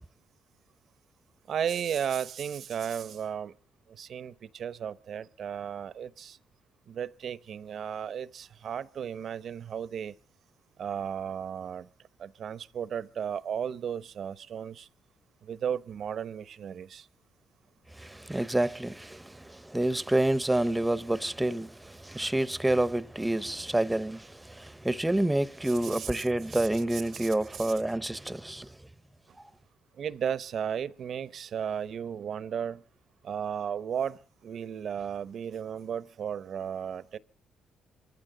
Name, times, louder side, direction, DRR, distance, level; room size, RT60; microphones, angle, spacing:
voice 1, 1.5-3.5 3.9-6.4 6.9-10.1 10.8-11.9 12.2-14.9 15.4-17.1 25.8-26.2 26.5-27.7 30.0-32.8 33.2-37.2, right 8 dB, 60° right, 0.7 m, -35 dB
voice 2, 17.9-28.9, right 1 dB, 10° right, 0.7 m, -28 dB
26.0 x 15.0 x 3.8 m
cardioid pair, 90°, 0 cm